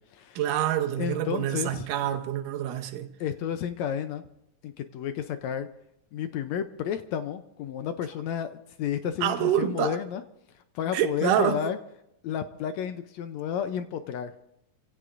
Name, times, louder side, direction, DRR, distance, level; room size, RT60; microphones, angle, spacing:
voice 1, 0.4-3.1 9.2-10.0 10.9-11.6, right 11 dB, 75° right, 2.4 m, -26 dB
voice 2, 1.0-1.9 3.2-4.2 4.6-5.7 6.1-8.5 8.8-10.2 10.7-11.8 12.2-14.3, left 9 dB, 80° left, 1.6 m, -31 dB
27.5 x 16.5 x 2.6 m
omnidirectional pair, 3.8 m